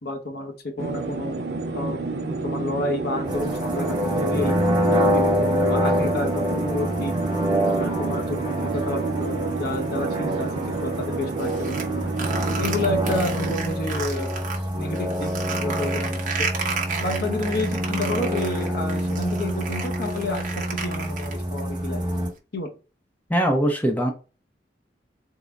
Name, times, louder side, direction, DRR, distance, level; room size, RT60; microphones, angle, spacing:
voice 1, 0.0-1.3 1.7-4.5 4.9-7.1 7.8-11.8 12.5-14.3 14.7-15.3 15.6-16.5 17.0-22.0 22.5-22.8, left 2 dB, 60° left, 3 dB, 0.8 m, -30 dB
sound 1, 0.8-13.6, right 3 dB, 65° right, 0.5 m, -30 dB
sound 2, 3.3-22.3, equal, 25° right, 1.2 m, -26 dB
sound 3, 11.4-14.6 14.9-21.6, right 5 dB, 50° right, 0.8 m, -32 dB
voice 2, 23.3-24.1, equal, 10° left, 2 dB, 0.5 m, -21 dB
3.8 x 2.0 x 3.3 m, 0.33 s
head